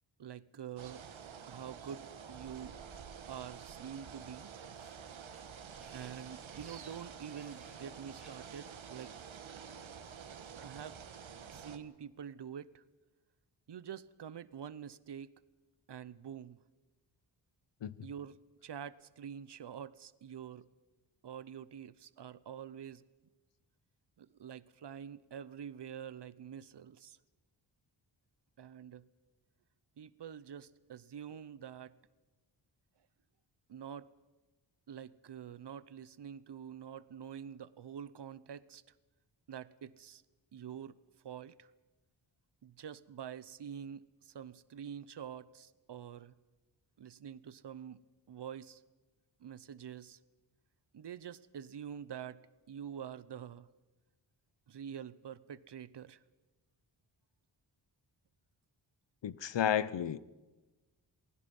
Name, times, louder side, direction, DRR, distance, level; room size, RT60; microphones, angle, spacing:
voice 1, 0.2-1.1 1.5-2.8 3.3-4.5 5.9-9.2 10.6-11.0 11.5-12.8 13.7-15.3 15.9-16.6 18.0-20.7 21.2-23.0 24.2-27.2 28.6-29.1 30.0-32.0 33.7-34.1 34.9-38.8 39.5-40.2 40.5-41.0 41.2-41.7 42.6-46.4 47.0-48.8 49.4-50.2 50.9-53.7 54.7-56.2, right 8 dB, 60° right, 0.9 m, -46 dB
sound 1, 0.8-11.8, right 7 dB, 90° right, 1.6 m, -49 dB
sound 2, 4.5-9.1, right 1 dB, ahead, 6.1 m, -64 dB
voice 2, 59.2-60.2, left 9 dB, 70° left, 0.8 m, -32 dB
28.5 x 20.5 x 5.4 m
wide cardioid pair, 115°, 45 cm